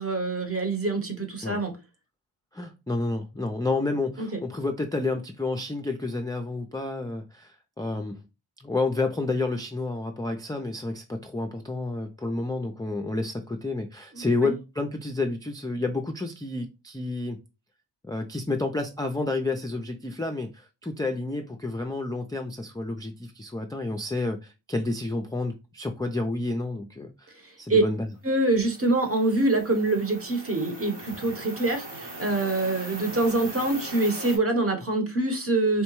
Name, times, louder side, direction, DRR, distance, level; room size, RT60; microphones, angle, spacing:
voice 1, 0.0-1.8 4.2-4.4 14.1-14.5 27.3-27.8 28.2-35.8, right 2 dB, 30° right, 0.9 m, -25 dB
voice 2, 2.5-8.2 8.6-17.4 18.0-28.1, left 2 dB, 10° left, 0.4 m, -30 dB
sound 1, 28.5-34.4, right 2 dB, 60° right, 1.2 m, -40 dB
3.7 x 2.2 x 3.0 m
cardioid pair, 40°, 46 cm